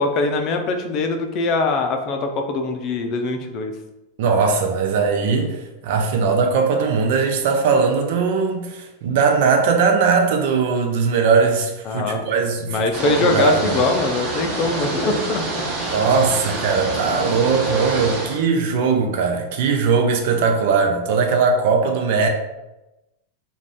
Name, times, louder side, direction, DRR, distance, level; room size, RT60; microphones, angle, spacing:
voice 1, 0.0-3.8 11.8-12.2 12.6-16.0, left 3 dB, 45° left, 0.5 m, -22 dB
voice 2, 4.2-13.6 15.9-22.3, right 5 dB, 65° right, 0.5 m, -19 dB
sound 1, 12.9-18.4, right 2 dB, 45° right, 0.9 m, -27 dB
2.5 x 2.3 x 3.4 m
hypercardioid pair, 120°, 0 cm